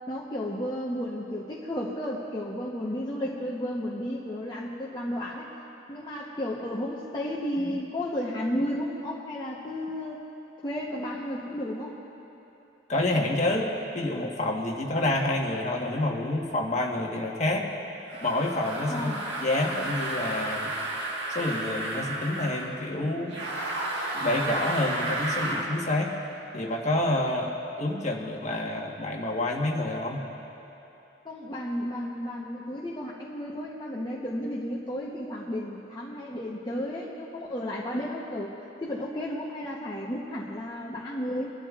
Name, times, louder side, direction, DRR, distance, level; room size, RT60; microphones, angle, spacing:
voice 1, 0.1-5.5 5.9-10.2 10.6-12.0 18.9-19.2 31.2-38.5 38.8-41.5, left 1 dB, 25° left, -5 dB, 0.9 m, -33 dB
voice 2, 12.9-17.7 18.2-19.1 19.4-20.7 21.3-23.4 24.1-26.1 26.5-30.2, left 1 dB, 40° left, 0 dB, 1.3 m, -28 dB
sound 1, 18.1-22.7 23.3-25.7, right 2 dB, 75° right, 1.5 m, -32 dB
26.5 x 11.5 x 2.4 m, 3.0 s
head